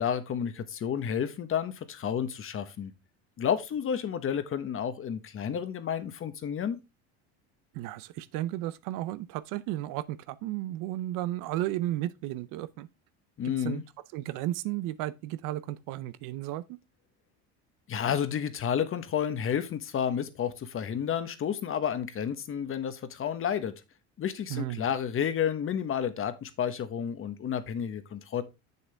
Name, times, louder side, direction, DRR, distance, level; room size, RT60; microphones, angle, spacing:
voice 1, 0.0-2.9 3.4-6.8 13.4-13.8 17.9-23.7 24.2-28.4, left 8 dB, 40° left, 1.2 m, -31 dB
voice 2, 7.7-12.9 13.6-13.8 14.1-16.8 24.5-24.8, right 14 dB, 65° right, 0.7 m, -34 dB
7.2 x 6.8 x 3.4 m
supercardioid pair, 100°, 34 cm